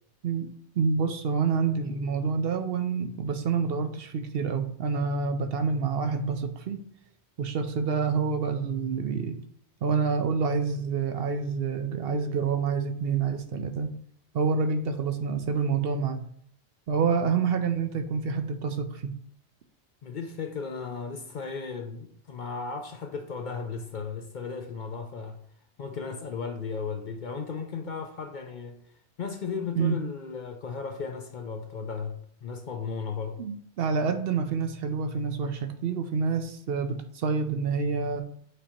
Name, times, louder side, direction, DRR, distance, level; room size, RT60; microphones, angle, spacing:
voice 1, 0.8-6.8 7.4-9.4 9.8-13.9 14.3-16.2 16.9-19.1 29.8-30.0 33.4-38.2, right 5 dB, 65° right, 8 dB, 0.7 m, -27 dB
voice 2, 20.0-25.4 25.8-28.7 29.2-33.4, left 5 dB, 55° left, 5 dB, 0.6 m, -35 dB
8.1 x 2.8 x 4.3 m, 0.64 s
omnidirectional pair, 1.1 m